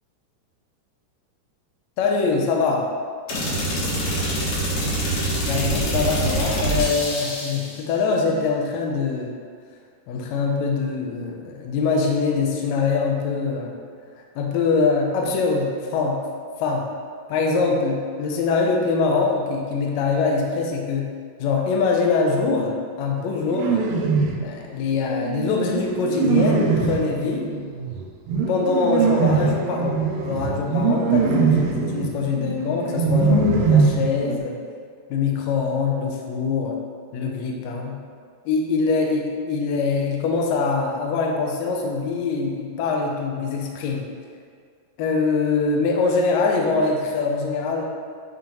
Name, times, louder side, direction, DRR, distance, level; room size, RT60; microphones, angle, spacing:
voice 1, 2.0-2.9 5.5-9.3 10.1-13.8 14.3-16.2 16.6-16.9 17.3-21.1 21.4-23.8 24.4-27.5 28.5-34.5 35.1-36.8 37.1-38.0 38.4-44.0 45.0-47.8, left 4 dB, 80° left, 0 dB, 1.6 m, -23 dB
sound 1, 3.3-7.7, right 1 dB, 65° left, 2.2 m, -25 dB
sound 2, 23.5-24.5 25.2-34.4, right 5 dB, 85° right, 2.3 m, -22 dB
9.0 x 3.8 x 2.9 m, 2.1 s
omnidirectional pair, 3.9 m